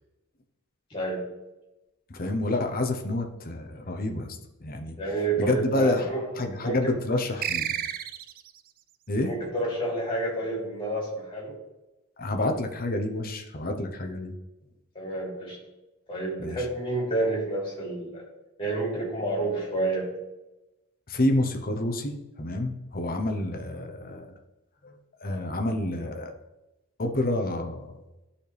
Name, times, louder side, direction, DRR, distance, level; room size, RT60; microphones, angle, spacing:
voice 1, 0.9-1.2 5.0-6.2 6.6-6.9 9.3-11.5 14.9-15.6 16.1-18.3 18.6-20.1, right 2 dB, 25° left, -3 dB, 3.0 m, -29 dB
voice 2, 2.1-5.0 5.4-6.1 6.4-7.7 9.1-9.3 12.2-14.3 16.4-16.7 21.1-24.3 24.8-26.3 27.0-28.0, left 1 dB, 45° left, 4 dB, 0.9 m, -28 dB
sound 1, 7.4-8.6, right 9 dB, 45° right, 0.4 m, -31 dB
12.0 x 4.3 x 3.4 m, 1.0 s
head